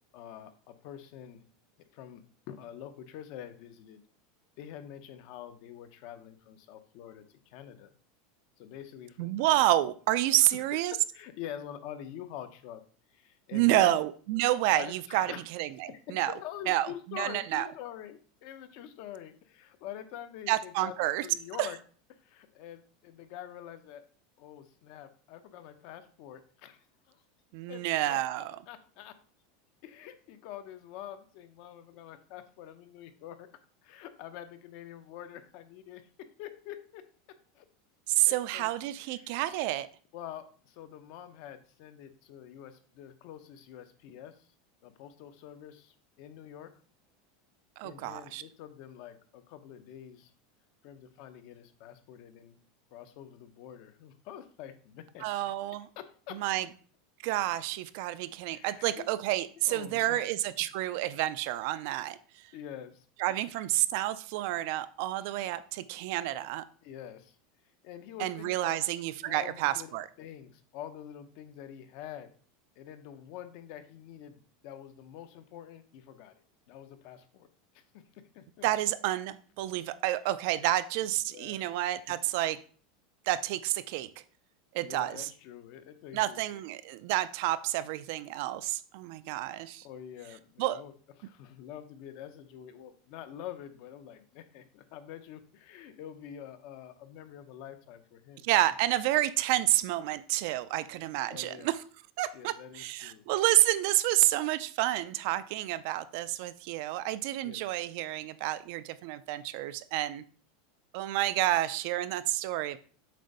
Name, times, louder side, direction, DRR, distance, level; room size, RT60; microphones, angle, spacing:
voice 1, 0.1-1.4 1.9-2.2 2.5-4.0 4.6-7.9 8.6-9.3 9.6-9.7 10.9-12.8 13.1-13.9 14.7-15.4 16.1-20.9 21.2-21.8 22.2-24.0 24.4-27.2 27.7-28.2 28.7-29.1 29.8-33.5 33.8-37.0 37.5-37.6 38.3-38.7 39.1-39.3 40.1-44.5 44.8-46.7 47.8-50.3 50.8-52.6 52.9-55.2 56.0-56.4 58.5-59.1 59.6-60.2 62.5-63.0 65.2-65.3 66.8-67.4 67.8-68.8 69.2-69.9 70.2-72.3 72.8-76.3 76.7-77.5 77.7-78.0 78.3-78.7 81.0-81.1 81.3-81.7 84.8-86.6 89.8-90.9 91.2-98.5 101.3-101.7 102.3-103.2 107.4-107.7, left 10 dB, 50° left, 10 dB, 0.7 m, -46 dB
voice 2, 9.2-11.0 13.5-16.3 16.7-17.7 20.5-21.3 21.6-21.7 27.5-28.6 38.1-39.9 47.8-48.4 55.2-55.9 56.3-56.7 57.2-62.4 63.2-66.6 68.2-70.1 78.6-82.6 83.3-84.1 84.7-85.3 86.1-89.9 90.6-90.8 98.4-101.8 102.2-110.2 110.9-112.8, right 15 dB, 55° right, 14 dB, 0.4 m, -29 dB
7.5 x 2.6 x 5.3 m, 0.42 s
supercardioid pair, 160°, 0 cm